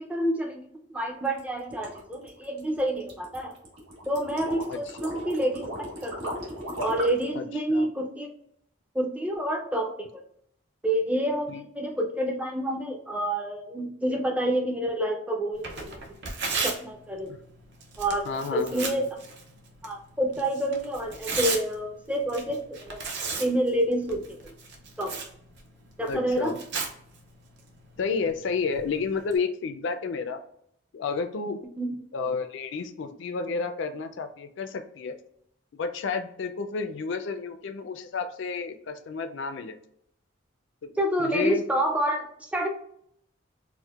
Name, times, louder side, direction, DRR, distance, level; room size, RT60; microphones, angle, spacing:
voice 1, 0.0-3.5 4.1-5.7 6.0-6.2 6.8-8.3 8.9-10.2 10.8-16.0 16.6-17.3 18.0-19.2 19.8-23.0 23.4-24.5 25.0-25.2 26.0-26.5 31.8-32.0 41.0-42.7, right 1 dB, 5° right, 2 dB, 0.4 m, -28 dB
sound 1, 1.3-7.3, equal, 80° right, 1.2 m, -37 dB
voice 2, 7.3-7.9 11.5-11.6 17.3-17.4 18.3-19.0 26.1-26.6 28.0-30.4 30.9-31.6 32.1-35.2 35.7-39.8 40.8-40.9 41.2-41.6, left 5 dB, 60° left, 7 dB, 0.3 m, -31 dB
Tearing, 15.5-29.4, right 4 dB, 55° right, 0.6 m, -37 dB
4.3 x 2.1 x 2.3 m, 0.70 s
head